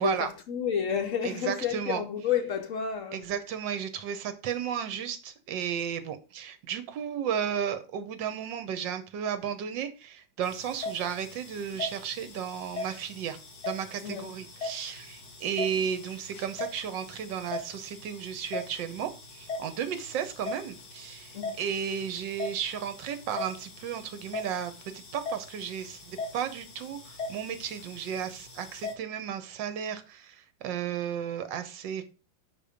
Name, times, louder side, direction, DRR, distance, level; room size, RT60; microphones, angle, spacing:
voice 1, 0.0-3.2 14.0-14.3 21.3-21.5, left 8 dB, 85° left, 0.7 m, -30 dB
voice 2, 1.2-2.0 3.1-13.4 13.7-32.0, right 8 dB, 70° right, 1.4 m, -34 dB
sound 1, 10.4-28.9, left 3 dB, 55° left, 1.9 m, -41 dB
5.4 x 4.2 x 5.0 m
omnidirectional pair, 2.2 m